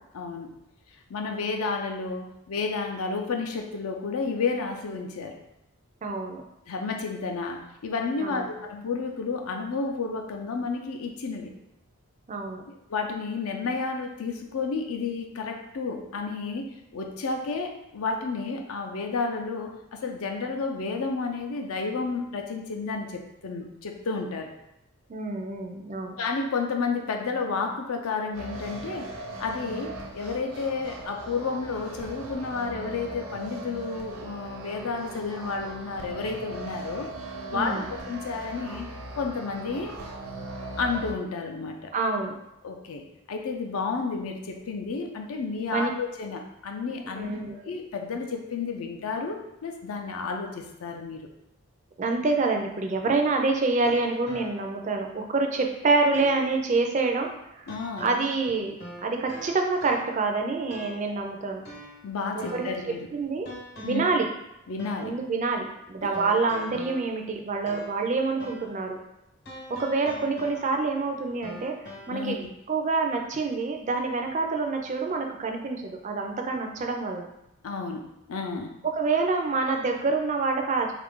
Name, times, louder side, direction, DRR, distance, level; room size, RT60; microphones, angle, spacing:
voice 1, 0.1-0.5 1.1-5.4 6.7-11.5 12.7-24.5 26.2-29.1 29.4-37.1 37.5-38.9 39.2-39.9 40.8-41.9 42.6-47.3 47.6-51.3 57.7-58.1 62.0-63.1 63.8-64.1 64.7-65.2 66.0-66.2 72.1-72.5 77.6-78.7, left 4 dB, 75° left, 3 dB, 0.5 m, -31 dB
voice 2, 6.0-6.4 8.2-8.5 12.3-12.6 25.1-26.2 37.5-37.9 41.9-42.4 45.7-45.9 47.2-47.7 52.0-57.3 57.5-57.7 58.0-58.7 59.0-61.6 62.5-63.5 63.8-64.3 65.0-69.0 69.8-72.4 72.7-77.3 78.9-80.9, right 3 dB, 35° right, 3 dB, 0.3 m, -27 dB
sound 1, 28.3-41.1, right 2 dB, 75° right, 0.6 m, -39 dB
sound 2, 52.9-54.9 55.4-55.5 56.1-56.7 57.7-58.4 58.8-60.3 60.7-61.2 61.6-62.9 63.5-64.2 64.8-65.2 66.1-68.1 68.4-68.8 69.5-71.0 71.4-72.1, equal, 50° left, 0.9 m, -44 dB
3.4 x 2.4 x 3.6 m, 0.87 s
head